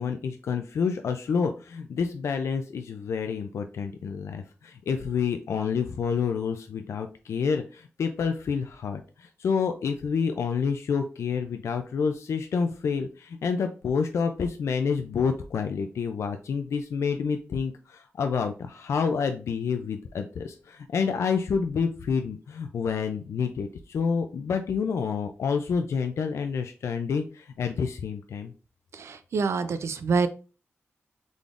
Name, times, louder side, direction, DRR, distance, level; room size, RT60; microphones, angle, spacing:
voice 1, 0.0-28.5, left 6 dB, 75° left, 6 dB, 0.3 m, -28 dB
voice 2, 28.9-30.3, right 4 dB, 70° right, 11 dB, 0.4 m, -26 dB
3.8 x 3.4 x 2.4 m, 0.35 s
wide cardioid pair, 110°, 5 cm